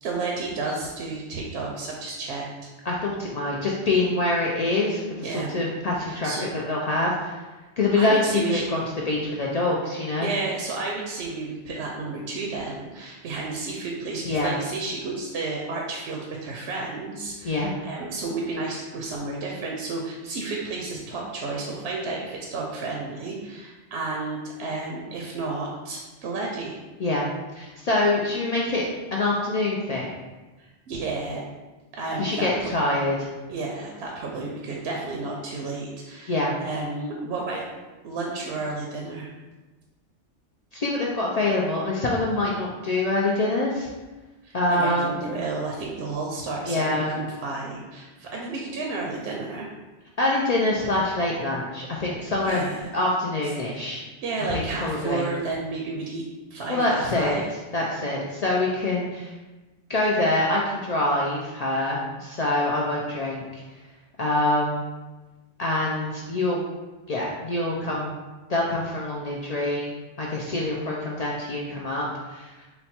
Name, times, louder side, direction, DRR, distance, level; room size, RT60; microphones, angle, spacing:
voice 1, 0.0-2.7 5.2-5.5 6.0-6.4 7.9-8.6 10.2-26.8 30.6-31.4 31.9-32.7 33.5-37.7 38.0-39.3 44.4-49.7 52.5-52.8 54.2-56.2 56.5-57.5, right 3 dB, 65° right, -1 dB, 0.8 m, -32 dB
voice 2, 2.8-7.3 7.8-10.3 14.2-14.5 17.4-17.7 27.0-27.3 27.5-30.1 32.2-33.3 36.3-36.5 40.7-43.9 44.5-45.1 46.7-47.1 50.2-52.6 52.9-54.0 54.5-55.2 56.7-57.4 57.7-59.3 59.9-63.6 64.2-64.8 65.6-66.6 67.1-68.2 68.5-72.7, left 2 dB, 70° left, -3 dB, 0.3 m, -25 dB
4.0 x 2.2 x 4.2 m, 1.2 s
omnidirectional pair, 1.2 m